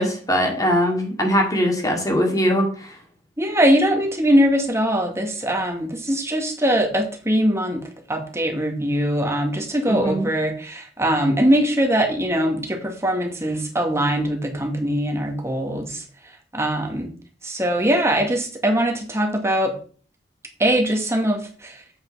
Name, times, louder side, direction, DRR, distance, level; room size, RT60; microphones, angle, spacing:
voice 1, 0.0-3.0 9.9-10.3, equal, 20° left, 2 dB, 2.2 m, -21 dB
voice 2, 3.4-7.8 8.1-16.0 16.5-17.1 17.4-19.7 20.6-21.8, equal, 15° right, 2 dB, 1.9 m, -21 dB
8.0 x 5.6 x 5.5 m, 0.42 s
head